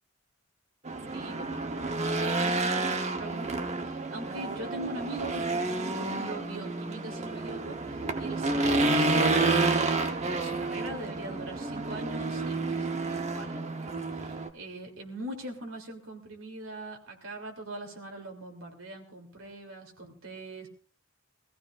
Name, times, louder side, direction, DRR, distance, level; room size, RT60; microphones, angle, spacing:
Race car auto racing / Engine, 0.9-14.5, right 3 dB, 35° right, 1.0 m, -29 dB
voice 1, 1.1-20.7, right 1 dB, 80° right, 2 dB, 3.2 m, -42 dB
23.0 x 15.0 x 2.6 m, 0.40 s
head